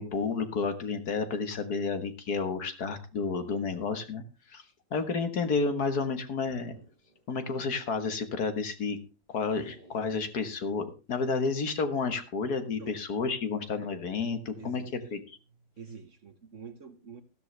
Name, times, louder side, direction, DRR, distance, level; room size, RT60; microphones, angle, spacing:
voice 1, 0.0-4.2 4.5-4.6 4.9-6.8 7.3-9.0 9.3-14.8 15.1-15.2, left 4 dB, 60° left, 1.8 m, -31 dB
sound 1, 6.4-7.3 7.6-7.7 9.6-10.4 11.9-12.4, right 1 dB, 20° left, 6.5 m, -56 dB
voice 2, 14.6-14.9 15.8-17.2, right 6 dB, 50° right, 1.2 m, -46 dB
14.0 x 12.5 x 3.3 m
omnidirectional pair, 2.0 m